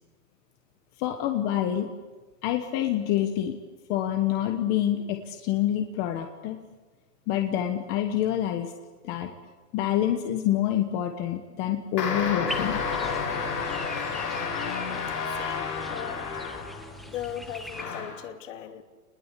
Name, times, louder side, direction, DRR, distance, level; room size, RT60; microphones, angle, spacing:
voice 1, 1.0-1.9 2.4-3.6 3.9-6.6 7.3-8.7 9.0-9.3 9.7-12.8, left 11 dB, 20° left, 5 dB, 1.2 m, -27 dB
sound 1, 12.0-17.0 17.7-18.3, left 5 dB, 85° left, 7.7 m, -31 dB
sound 2, 12.5-17.8, equal, ahead, 1.1 m, -41 dB
voice 2, 15.3-16.6 17.0-18.8, left 10 dB, 50° left, 6 dB, 2.8 m, -38 dB
28.0 x 20.5 x 8.4 m, 1.3 s
hypercardioid pair, 165°, 47 cm